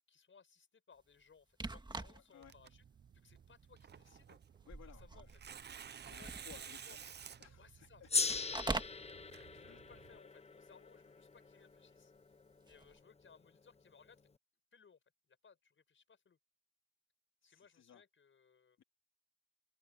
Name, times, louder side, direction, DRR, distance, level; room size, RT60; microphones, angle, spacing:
voice 1, 0.0-2.8 3.1-4.4 5.0-5.3 6.1-6.4 6.8-7.0 7.6-12.1 12.7-14.2 14.7-15.0 15.3-16.4 17.4-18.8, left 6 dB, 40° left, 6.1 m, -64 dB
sound 1, 1.5-2.4 2.9-3.0 3.9-4.2 4.5-6.8 8.3-9.0 12.7-13.0, right 2 dB, 15° right, 2.0 m, -43 dB
voice 2, 2.1-2.5 4.6-5.3 6.1-7.0 7.4-8.1 9.7-9.8 17.4-18.0 18.8-18.9, left 8 dB, 60° left, 3.7 m, -60 dB
Tearing, 2.4-10.2, right 7 dB, 35° right, 0.7 m, -54 dB
Gong, 8.1-12.8, left 4 dB, 20° left, 1.0 m, -40 dB
cardioid pair, 90°, 30 cm